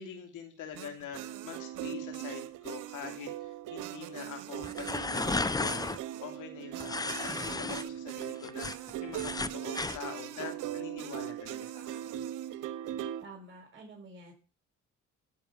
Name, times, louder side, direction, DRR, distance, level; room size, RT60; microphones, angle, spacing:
voice 1, 0.0-5.8 6.2-12.1, left 7 dB, 85° left, 4 dB, 3.0 m, -44 dB
sound 1, 0.7-13.2, right 12 dB, 90° right, 0.9 m, -40 dB
sound 2, 4.6-6.0 6.8-7.8 8.2-10.0, left 3 dB, 15° left, 0.6 m, -33 dB
voice 2, 13.2-14.3, right 2 dB, 40° right, 0 dB, 5.8 m, -49 dB
13.0 x 5.9 x 7.3 m, 0.34 s
cardioid pair, 90°, 30 cm